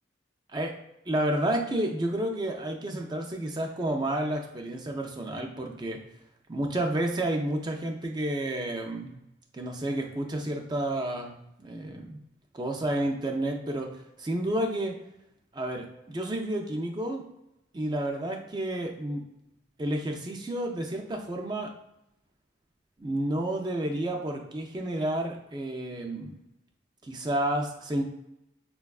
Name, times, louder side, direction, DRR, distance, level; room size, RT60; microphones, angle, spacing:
voice 1, 1.1-6.0 6.5-9.2 9.5-12.2 12.5-13.9 14.2-15.0 15.5-17.2 17.7-19.2 19.8-21.7 23.0-26.4 27.0-28.0, right 1 dB, 25° right, 2 dB, 0.4 m, -30 dB
4.3 x 2.2 x 2.3 m, 0.86 s
head